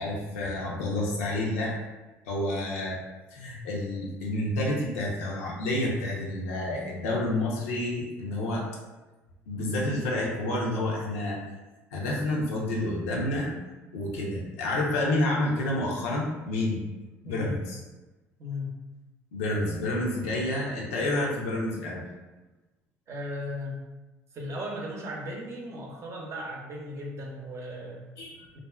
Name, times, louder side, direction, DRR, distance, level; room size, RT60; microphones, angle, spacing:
voice 1, 0.0-1.8 2.3-3.0 3.3-8.6 9.5-11.4 11.9-13.5 13.9-16.8 17.2-17.8 19.3-22.0 28.2-28.5, left 1 dB, 85° left, -3 dB, 0.5 m, -29 dB
voice 2, 18.4-18.8 23.1-23.8 24.3-28.0, left 1 dB, 40° right, -1 dB, 0.6 m, -36 dB
2.4 x 2.3 x 2.2 m, 1.1 s
hypercardioid pair, 70°, 7 cm